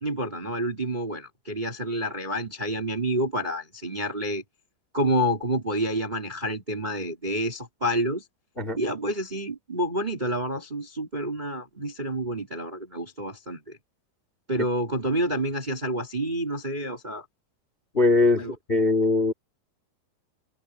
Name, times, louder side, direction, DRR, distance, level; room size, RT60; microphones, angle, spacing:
voice 1, 0.0-4.4 4.9-8.2 8.8-13.8 14.5-17.2 18.4-18.5, right 1 dB, 15° right, 2.2 m, -28 dB
voice 2, 17.9-19.3, left 3 dB, 20° left, 2.1 m, -21 dB
omnidirectional pair, 4.5 m